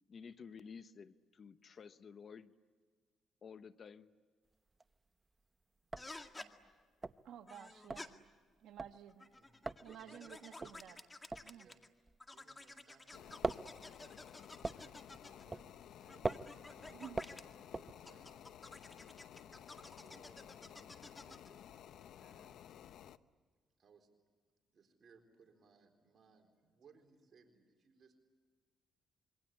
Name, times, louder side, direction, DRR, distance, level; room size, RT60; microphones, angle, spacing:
voice 1, 0.1-2.5 3.4-4.1 6.6-7.0, left 6 dB, 50° left, 12 dB, 0.9 m, -53 dB
sound 1, 4.5-5.1 5.4-5.5 5.8-12.8 13.1-18.4, right 3 dB, 20° right, 0.8 m, -43 dB
sound 2, 6.0-6.5 7.5-8.1 9.1-11.9 12.2-15.5 16.1-17.4 18.1-21.5, left 2 dB, 20° left, 2.1 m, -52 dB
voice 2, 7.2-8.3 8.6-9.3 9.8-11.0 11.4-11.7 16.9-17.2, right 9 dB, 75° right, 5 dB, 1.6 m, -53 dB
voice 3, 9.8-10.4 11.5-11.8 12.3-13.8 14.7-17.1 17.4-18.5 19.5-22.6 23.8-24.1 24.7-28.2, right 5 dB, 50° right, 3 dB, 4.2 m, -67 dB
sound 3, 13.1-23.2, left 10 dB, 75° left, 0.8 m, -55 dB
27.0 x 24.0 x 8.6 m, 1.5 s
cardioid pair, 90°, 0 cm